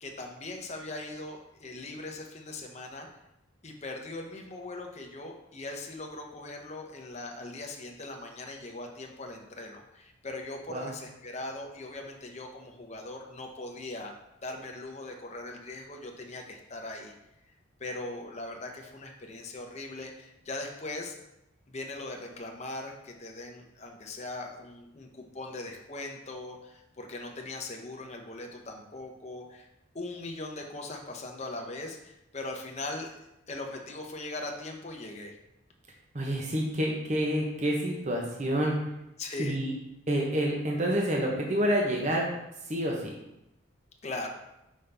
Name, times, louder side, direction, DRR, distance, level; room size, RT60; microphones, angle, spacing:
voice 1, 0.0-3.1 3.6-14.1 14.4-17.1 17.8-21.2 21.7-29.7 29.9-35.4 39.2-39.6 44.0-44.3, left 2 dB, 30° left, 2 dB, 0.7 m, -40 dB
voice 2, 36.1-38.8 39.4-39.7 40.1-42.3 42.7-43.1, equal, 35° right, -1 dB, 0.8 m, -28 dB
5.4 x 5.4 x 3.4 m, 0.88 s
head